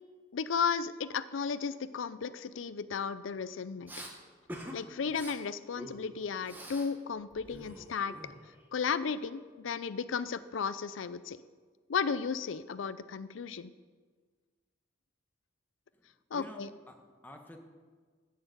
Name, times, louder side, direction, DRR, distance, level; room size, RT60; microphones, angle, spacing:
voice 1, 0.3-3.9 4.7-8.2 8.7-11.4 11.9-13.7 16.3-16.7, left 6 dB, 85° left, 14 dB, 0.5 m, -34 dB
Respiratory sounds, 3.9-4.1 4.5-4.8 5.1-5.4 5.8-6.9 7.2-8.6, equal, 10° right, 1.4 m, -46 dB
voice 2, 15.9-17.6, left 1 dB, 10° left, 3 dB, 1.2 m, -51 dB
13.5 x 6.7 x 8.1 m, 1.5 s
head